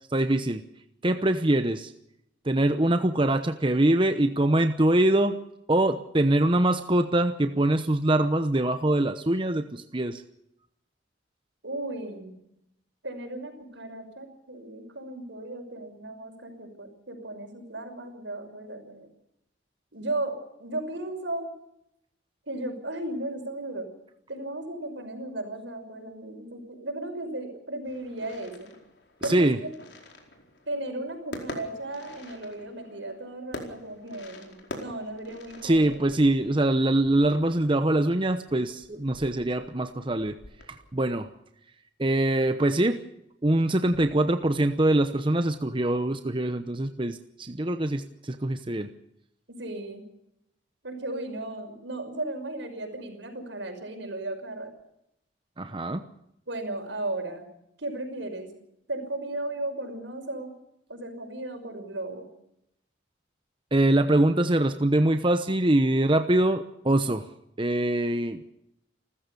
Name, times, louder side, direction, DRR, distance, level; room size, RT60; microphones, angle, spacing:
voice 1, 0.1-0.6 1.0-1.9 2.4-5.4 5.7-10.2 29.2-29.6 35.6-40.4 40.9-41.3 42.0-43.0 43.4-48.9 55.6-56.0 63.7-67.2 67.6-68.4, right 1 dB, 25° right, 8 dB, 0.9 m, -23 dB
voice 2, 11.6-12.4 13.0-19.1 19.9-21.5 22.5-23.9 24.3-28.7 29.2-29.7 30.7-36.0 49.6-50.0 50.8-54.7 56.5-57.5 57.8-58.5 58.9-60.6 60.9-62.3, right 2 dB, 80° right, 5 dB, 5.8 m, -35 dB
sound 1, 27.8-41.1, left 1 dB, 65° left, 4.7 m, -45 dB
29.0 x 14.5 x 7.0 m, 0.80 s
head